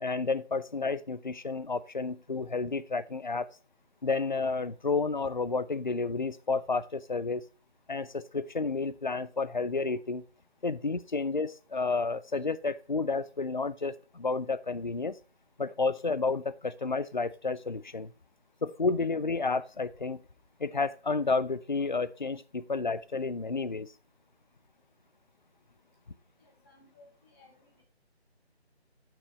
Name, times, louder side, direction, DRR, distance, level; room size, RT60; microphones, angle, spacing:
voice 1, 0.0-3.5 4.0-7.4 7.9-10.2 10.6-15.2 15.6-18.1 18.6-20.2 20.6-23.9, left 4 dB, 45° left, 0.5 m, -31 dB
voice 2, 26.4-27.7, left 2 dB, 20° left, 1.5 m, -60 dB
12.5 x 6.0 x 3.1 m
figure-of-eight pair, 170°, 33 cm